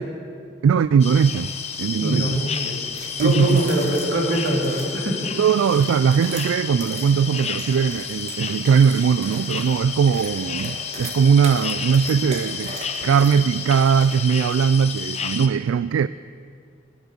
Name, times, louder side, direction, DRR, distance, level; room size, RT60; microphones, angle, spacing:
voice 1, 0.6-1.5 1.8-2.5 3.2-3.6 5.4-12.8 13.0-16.1, right 7 dB, 85° right, 16 dB, 0.3 m, -19 dB
sound 1, 1.0-15.5, left 6 dB, 30° left, 0.8 m, -31 dB
voice 2, 2.0-2.7 3.2-5.3, equal, 65° right, -2 dB, 3.2 m, -23 dB
sound 2, 2.9-4.9 5.5-14.4, right 2 dB, 35° right, 1.7 m, -39 dB
19.0 x 9.6 x 6.7 m, 2.3 s
head